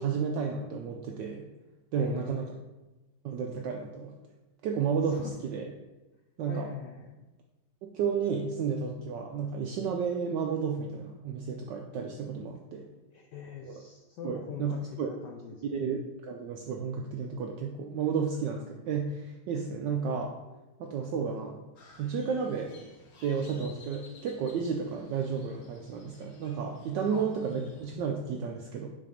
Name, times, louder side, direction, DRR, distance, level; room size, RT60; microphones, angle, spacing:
voice 1, 0.0-1.5 1.9-2.5 3.2-4.1 4.6-5.7 6.4-6.7 7.9-12.9 13.6-13.8 14.2-15.1 15.7-20.3 20.8-21.6 22.0-22.9 23.2-28.9, right 6 dB, 80° right, 2 dB, 1.0 m, -32 dB
voice 2, 1.9-2.3 5.0-5.4 6.5-7.2 13.1-15.8 27.1-27.3, left 6 dB, 80° left, 1 dB, 0.9 m, -43 dB
Crow, 21.8-28.0, left 5 dB, 50° left, 1.3 m, -52 dB
5.8 x 3.6 x 5.0 m, 1.1 s
omnidirectional pair, 2.4 m